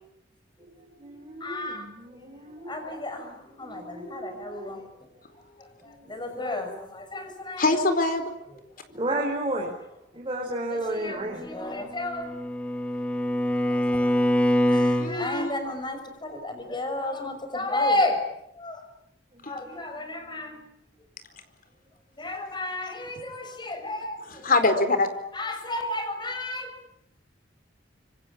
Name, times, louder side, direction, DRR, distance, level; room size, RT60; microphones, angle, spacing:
voice 1, 0.8-2.8 3.1-4.8 5.8-6.4 8.9-9.7 10.1-11.4 19.3-19.8, right 1 dB, 25° right, -1 dB, 5.0 m, -34 dB
voice 2, 1.4-1.9 2.6-4.8 5.8-7.6 10.7-12.3 13.6-14.3 14.7-18.2 18.6-18.8 19.5-20.6 22.2-24.5 25.3-26.7, left 2 dB, 25° left, 6 dB, 6.3 m, -32 dB
voice 3, 7.6-8.3 15.0-15.5 19.4-19.5 23.4-23.8 24.3-25.1, left 2 dB, 50° left, 9 dB, 4.4 m, -24 dB
Bowed string instrument, 11.7-15.1, equal, 5° left, 2.6 m, -24 dB
26.5 x 24.5 x 8.7 m, 0.80 s
head